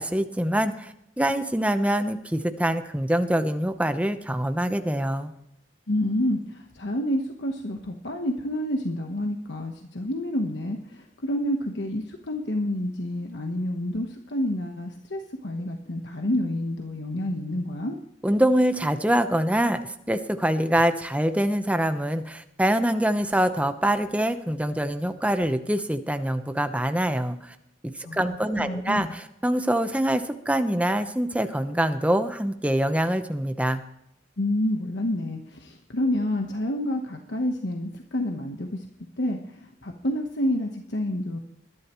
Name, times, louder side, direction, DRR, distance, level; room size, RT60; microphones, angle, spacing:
voice 1, 0.0-5.3 18.2-27.5 28.1-33.8, right 1 dB, 10° right, 9 dB, 0.9 m, -24 dB
voice 2, 5.9-18.0 28.0-28.2 28.6-29.1 34.4-38.9 39.2-41.4, left 1 dB, 70° left, 3 dB, 1.2 m, -28 dB
21.5 x 11.5 x 3.1 m, 0.79 s
head